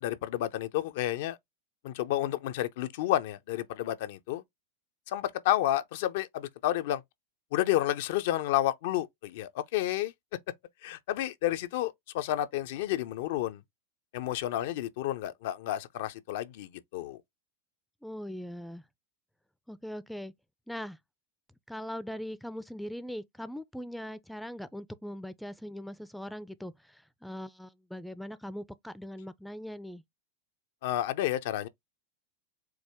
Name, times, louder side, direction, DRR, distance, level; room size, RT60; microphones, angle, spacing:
voice 1, 0.0-1.4 1.8-4.4 5.1-7.0 7.5-10.1 10.8-13.6 14.1-17.2 30.8-31.7, left 13 dB, 60° left, 0.4 m, -30 dB
voice 2, 18.0-18.8 19.7-20.3 20.7-21.0 21.7-30.0, equal, ahead, 0.4 m, -40 dB
4.6 x 2.1 x 3.4 m
hypercardioid pair, 90°, 0 cm